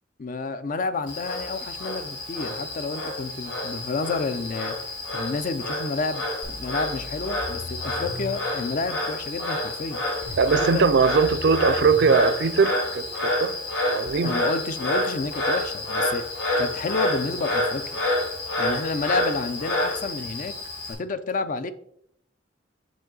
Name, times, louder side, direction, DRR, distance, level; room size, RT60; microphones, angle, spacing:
voice 1, 0.2-4.8 5.1-10.0 10.6-10.8 14.2-16.2 16.6-18.0 18.6-20.5 20.9-21.7, left 3 dB, 45° left, 0.5 m, -30 dB
Frog, 1.1-20.9, left 1 dB, 85° left, 2.6 m, -29 dB
sound 1, 6.4-8.4 10.2-12.2 14.1-14.2, left 1 dB, 65° left, 1.0 m, -38 dB
voice 2, 10.4-13.6 13.9-14.3, right 5 dB, 65° right, 0.4 m, -20 dB
6.0 x 5.2 x 3.8 m
head